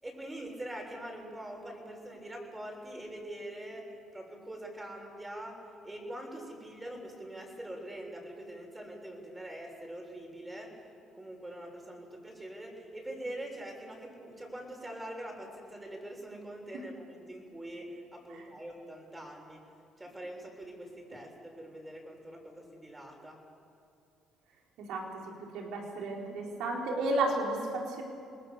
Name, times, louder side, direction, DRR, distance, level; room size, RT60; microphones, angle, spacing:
voice 1, 0.0-10.8 11.1-19.6 20.0-23.4, right 1 dB, 15° right, 1 dB, 7.1 m, -44 dB
voice 2, 24.9-28.0, right 2 dB, 75° right, 0 dB, 4.8 m, -33 dB
27.5 x 20.0 x 6.9 m, 2.6 s
supercardioid pair, 60°, 0 cm